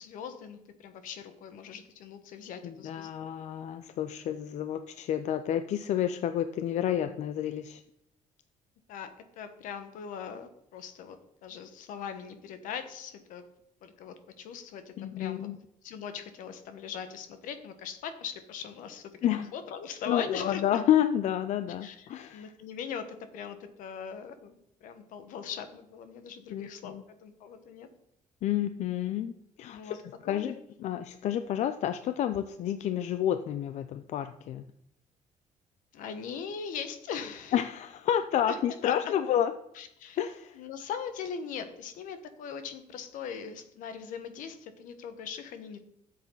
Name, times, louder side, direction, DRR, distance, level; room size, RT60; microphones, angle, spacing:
voice 1, 0.0-3.3 8.9-9.1 9.4-13.4 13.8-15.5 15.8-19.1 19.5-20.6 21.8-26.9 27.2-27.9 29.7-30.0 30.3-30.5 35.9-37.6 38.5-38.6 38.8-38.9 39.7-40.2 40.5-45.8, left 7 dB, 80° left, 9 dB, 1.3 m, -40 dB
voice 2, 2.6-7.8 15.0-15.6 19.2-19.5 20.1-22.5 26.5-27.0 28.4-34.7 37.5-39.5 40.2-40.6, left 10 dB, 60° left, 10 dB, 0.5 m, -30 dB
13.0 x 7.6 x 3.9 m, 0.78 s
cardioid pair, 145°, 13 cm